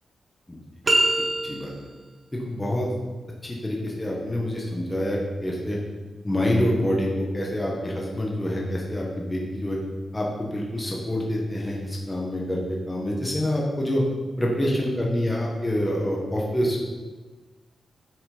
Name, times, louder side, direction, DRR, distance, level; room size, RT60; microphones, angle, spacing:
sound 1, 0.8-2.0, right 1 dB, 25° right, 1.1 m, -23 dB
voice 1, 1.2-1.7 2.3-2.9 3.4-5.8 6.2-9.8 10.1-14.0 14.4-16.8, left 1 dB, 10° left, -2 dB, 1.4 m, -26 dB
9.4 x 6.1 x 5.1 m, 1.3 s
wide cardioid pair, 175°, 0 cm